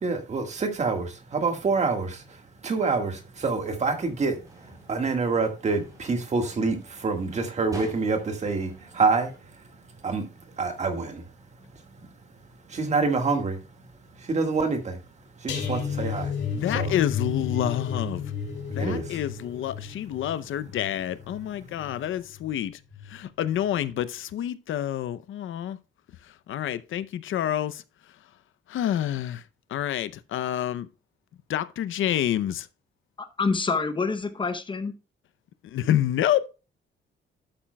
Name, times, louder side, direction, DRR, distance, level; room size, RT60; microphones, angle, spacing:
voice 1, 0.0-9.7 10.0-11.2 12.0-12.1 12.7-13.7 14.1-15.0 15.4-16.3 16.7-16.9 18.7-19.2 21.5-21.6, right 4 dB, 35° right, 1.7 m, -27 dB
sound 1, 3.5-9.4, right 1 dB, 15° right, 3.7 m, -47 dB
sound 2, 15.5-22.6 22.9-23.2 23.5-23.7, left 6 dB, 60° left, 2.9 m, -33 dB
voice 2, 16.5-18.3 18.7-22.8 23.1-25.8 26.5-27.8 28.7-29.4 29.7-30.9 31.5-32.7 35.7-36.5, left 11 dB, 80° left, 0.6 m, -28 dB
voice 3, 33.2-34.9, left 4 dB, 25° left, 0.7 m, -27 dB
11.5 x 8.8 x 2.2 m
wide cardioid pair, 180°, 20 cm